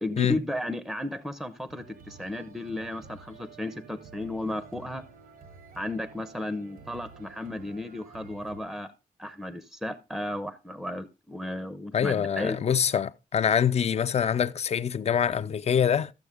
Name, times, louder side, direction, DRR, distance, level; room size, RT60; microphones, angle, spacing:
voice 1, 0.0-5.0 5.8-8.9 9.2-12.6, left 1 dB, ahead, 0.6 m, -34 dB
sound 1, 1.7-8.6, right 5 dB, 85° right, 1.3 m, -50 dB
voice 2, 11.9-16.1, left 8 dB, 45° left, 0.5 m, -25 dB
13.5 x 7.0 x 3.5 m
wide cardioid pair, 160°, 15 cm